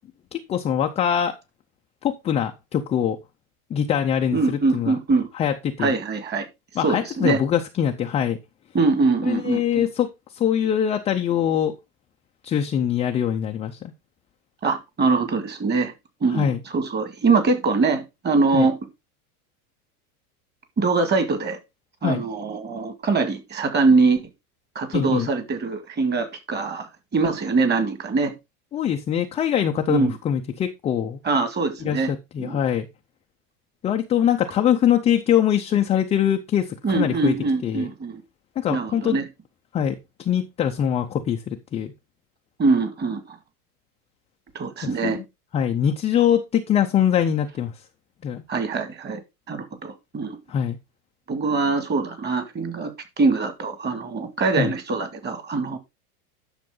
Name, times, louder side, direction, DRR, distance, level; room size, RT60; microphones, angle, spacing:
voice 1, 0.3-1.4 2.0-3.2 3.7-5.0 5.3-5.9 6.8-8.4 9.3-11.7 12.4-13.9 16.3-16.6 18.5-18.7 22.0-22.2 24.9-25.3 28.7-31.2 31.8-32.9 33.8-37.3 37.6-37.9 38.6-39.2 39.7-41.9 44.8-45.2 45.5-47.7 48.2-48.4 50.5-50.8 54.6-54.7, left 9 dB, 15° left, 0.5 m, -23 dB
voice 2, 4.3-5.3 5.8-6.5 6.8-7.4 8.7-9.9 14.6-15.9 16.2-18.8 20.8-21.6 22.0-24.2 24.8-28.3 29.9-30.2 31.2-32.1 32.4-32.6 36.8-38.2 38.7-39.3 42.6-43.4 44.5-45.2 48.5-49.2 49.5-50.4 51.3-52.9 53.2-55.8, right 4 dB, 20° right, 2.0 m, -23 dB
10.5 x 6.5 x 3.8 m
supercardioid pair, 140°, 45 cm